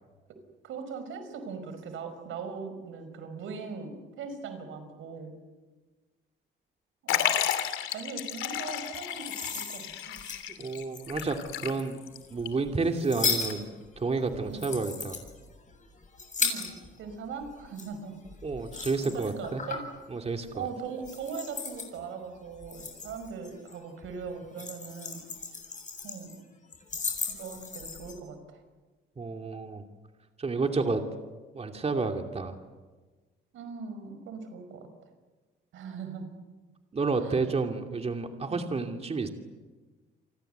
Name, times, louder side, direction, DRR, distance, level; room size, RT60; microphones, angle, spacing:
voice 1, 0.6-5.3 7.0-7.3 7.9-10.2 14.5-14.7 16.4-18.2 18.6-18.9 19.1-19.8 20.5-25.2 26.0-26.4 27.3-28.6 33.5-34.9 35.7-36.4 37.2-37.4 38.5-38.7, right 5 dB, 80° right, 9 dB, 5.6 m, -40 dB
Liquid, 7.1-12.2 12.5-12.6 13.5-13.6, left 10 dB, 85° left, 2.9 m, -32 dB
sound 1, 8.9-11.5 12.1-17.1 17.4-20.0 20.3-20.6 21.0-21.9 22.5-23.7 24.0-26.4 26.7-28.1, left 4 dB, 40° left, 7.3 m, -36 dB
voice 2, 10.6-12.0 12.3-13.7 14.0-15.2 18.4-19.6 20.1-20.7 29.2-29.8 30.4-31.0 31.5-32.5 36.9-39.3, right 4 dB, 30° right, 4 dB, 2.7 m, -30 dB
29.5 x 24.5 x 8.1 m, 1.3 s
cardioid pair, 90°, 20 cm